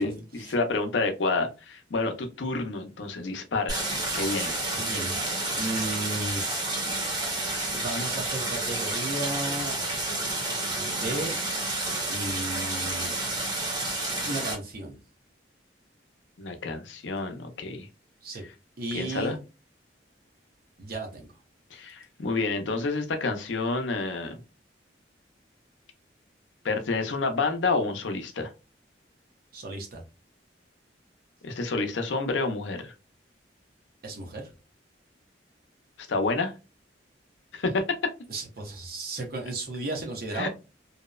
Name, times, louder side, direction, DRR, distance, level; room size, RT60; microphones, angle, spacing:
voice 1, 0.0-3.8 4.1-4.6 16.4-17.9 18.9-19.4 21.7-24.4 26.6-28.5 31.4-32.9 36.1-36.5 37.5-37.8 40.3-40.5, left 3 dB, 90° left, 6 dB, 0.5 m, -29 dB
Stream, 3.7-14.6, right 2 dB, 25° right, 0.8 m, -30 dB
voice 2, 4.7-5.2 5.5-6.4 7.7-9.7 10.8-11.4 12.1-13.1 14.3-15.0 18.2-18.4 18.8-19.3 20.8-21.3 29.5-30.0 34.0-34.5 38.3-40.5, right 2 dB, 55° right, 2 dB, 0.7 m, -34 dB
2.7 x 2.0 x 2.3 m, 0.29 s
head